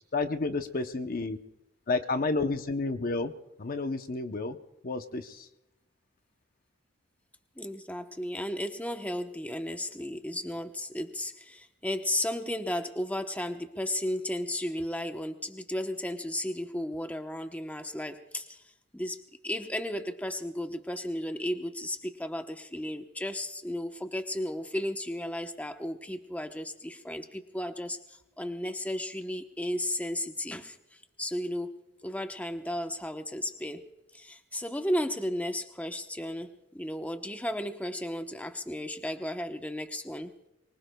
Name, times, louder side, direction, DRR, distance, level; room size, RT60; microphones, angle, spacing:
voice 1, 0.1-1.4 1.9-3.3 3.6-4.6 4.8-5.5, left 3 dB, 45° left, 7 dB, 0.8 m, -30 dB
voice 2, 7.6-18.6 18.9-33.9 34.1-40.3, left 1 dB, 5° left, 5 dB, 0.9 m, -34 dB
24.5 x 23.5 x 2.3 m, 0.91 s
head